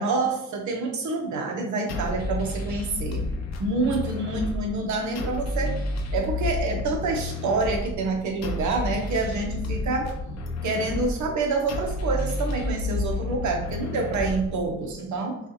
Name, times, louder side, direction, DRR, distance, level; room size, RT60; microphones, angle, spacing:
voice 1, 0.0-3.3 3.6-5.8 6.1-10.1 10.6-15.4, right 3 dB, 70° right, 2 dB, 1.0 m, -27 dB
sound 1, 1.9-14.9, left 2 dB, 60° left, 0.8 m, -31 dB
5.7 x 2.5 x 3.0 m, 0.81 s
cardioid pair, 90°, 30 cm